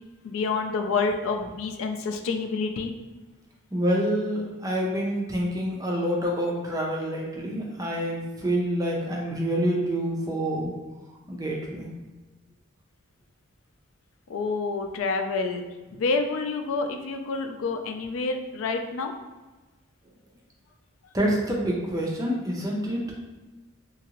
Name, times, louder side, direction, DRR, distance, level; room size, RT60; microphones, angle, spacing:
voice 1, 0.2-2.9 14.3-15.6 15.9-19.1, left 4 dB, 70° left, 6 dB, 0.3 m, -28 dB
voice 2, 3.7-10.7 11.3-11.9 21.1-23.0, equal, 15° right, -2 dB, 0.5 m, -27 dB
2.8 x 2.5 x 2.9 m, 1.2 s
head